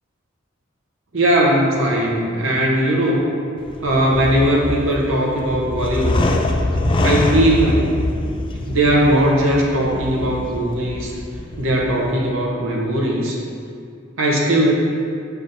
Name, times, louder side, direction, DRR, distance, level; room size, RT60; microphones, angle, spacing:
voice 1, 1.1-3.3 3.8-6.3 7.0-8.0 8.7-11.1 11.6-13.4 14.2-14.7, right 1 dB, 80° right, -3 dB, 0.9 m, -18 dB
sound 1, 3.6-12.1, left 1 dB, 25° left, 0.3 m, -24 dB
7.1 x 5.7 x 2.7 m, 2.3 s
head